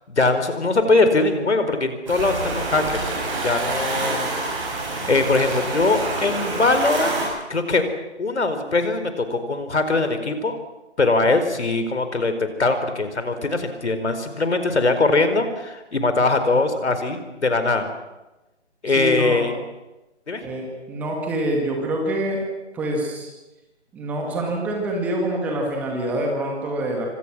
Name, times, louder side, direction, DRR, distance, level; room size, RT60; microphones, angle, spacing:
voice 1, 0.1-2.8 3.4-4.3 5.0-7.2 7.5-7.9 8.2-10.6 11.0-17.9 18.8-19.5 20.3-20.4, left 3 dB, 70° left, 9 dB, 4.5 m, -21 dB
sound 1, 2.1-7.2, right 2 dB, 25° right, 7.3 m, -27 dB
voice 2, 18.9-19.5 20.4-22.4 22.7-23.3 23.9-27.1, right 1 dB, 5° right, 1 dB, 1.9 m, -26 dB
26.0 x 25.0 x 6.2 m, 1.0 s
figure-of-eight pair, 165°, 35 cm